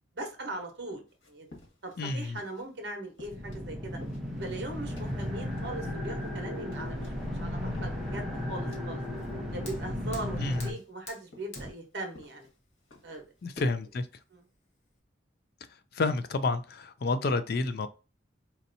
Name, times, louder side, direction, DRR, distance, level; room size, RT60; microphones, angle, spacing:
voice 1, 0.1-1.0 1.3-1.5 1.8-4.0 4.4-9.0 9.5-12.5 13.0-13.3 13.6-13.7 14.3-14.5, right 2 dB, 60° right, 1.0 m, -40 dB
sound 1, 1.1-2.8 3.1-7.3 7.6-9.3 9.6-13.8, left 2 dB, 85° left, 1.5 m, -53 dB
voice 2, 2.0-2.4 10.4-10.7 13.4-14.1 15.9-17.9, left 3 dB, 50° left, 0.4 m, -29 dB
sound 2, 3.2-10.7, left 1 dB, ahead, 0.8 m, -35 dB
Fire, 9.0-15.0, left 2 dB, 35° left, 0.9 m, -51 dB
4.3 x 2.7 x 2.6 m
head